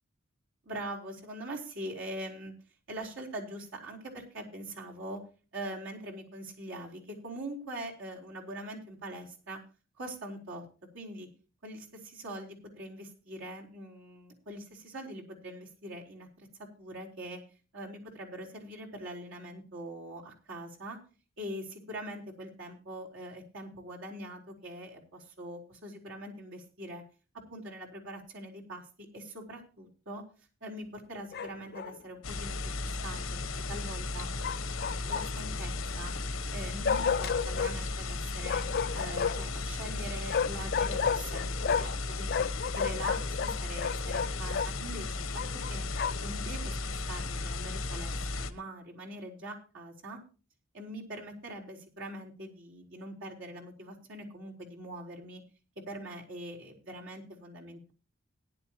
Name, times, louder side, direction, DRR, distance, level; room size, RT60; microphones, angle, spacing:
voice 1, 0.6-2.5 2.9-5.2 5.5-9.6 10.0-10.6 10.9-11.3 11.6-16.5 16.8-17.4 17.7-21.0 21.4-27.0 27.5-28.8 29.1-30.2 30.6-32.6 33.0-33.2 33.7-34.3 35.1-36.1 36.5-38.6 38.9-42.5 42.7-45.3 45.7-45.9 46.2-50.2 50.7-55.4 55.8-57.9, right 1 dB, 65° right, -2 dB, 4.2 m, -43 dB
Bark, 31.3-32.0 34.4-35.5 36.8-37.7 38.4-39.5 40.3-42.0 42.3-44.7 45.3-46.3, left 6 dB, 50° left, 0.5 m, -32 dB
sound 1, 32.2-48.5, left 3 dB, 85° left, 1.0 m, -35 dB
17.5 x 11.0 x 3.0 m, 0.35 s
head